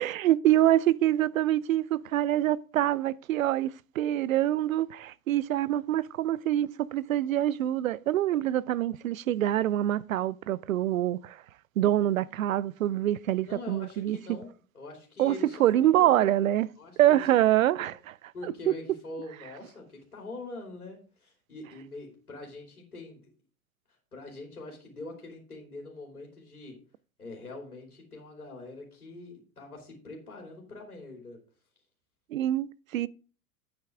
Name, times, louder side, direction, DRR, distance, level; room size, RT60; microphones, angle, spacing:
voice 1, 0.0-11.4 11.8-14.2 15.2-16.7 17.0-18.1 32.3-33.1, right 13 dB, 70° right, 0.5 m, -25 dB
voice 2, 13.4-16.4 16.8-17.2 17.8-17.9 18.3-23.3 24.1-26.8 27.2-31.4, left 2 dB, 80° left, 3.0 m, -44 dB
9.0 x 8.6 x 3.6 m
figure-of-eight pair, 90°, 43 cm